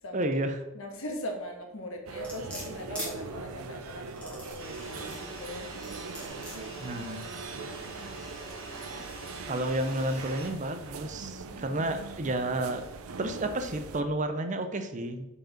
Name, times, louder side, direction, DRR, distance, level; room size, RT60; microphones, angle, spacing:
voice 1, 0.1-0.6 6.8-7.3 9.5-12.9 13.2-15.3, right 1 dB, 35° right, 8 dB, 0.5 m, -31 dB
voice 2, 0.7-5.7 6.2-7.3 8.6-9.1 11.5-11.9, left 1 dB, 75° left, 2 dB, 1.4 m, -41 dB
sound 1, 2.1-14.0, right 4 dB, 85° right, 0.6 m, -42 dB
sound 2, 2.2-3.1 4.1-5.3 5.8-6.6 7.2-7.3, equal, 5° left, 2.0 m, -40 dB
sound 3, 4.6-10.5, right 2 dB, 65° right, 1.4 m, -44 dB
5.2 x 4.8 x 5.7 m, 0.97 s
head